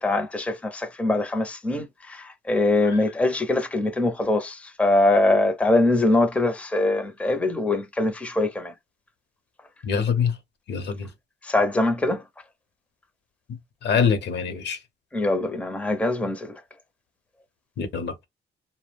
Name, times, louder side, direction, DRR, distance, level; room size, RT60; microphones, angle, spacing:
voice 1, 0.0-8.7 11.5-12.2 15.1-16.5, left 2 dB, 5° left, 0.5 m, -23 dB
voice 2, 9.8-10.3 10.7-11.1 13.8-14.8 17.8-18.1, left 6 dB, 60° left, 0.7 m, -24 dB
2.2 x 2.0 x 3.3 m
cardioid pair, 90°, 20 cm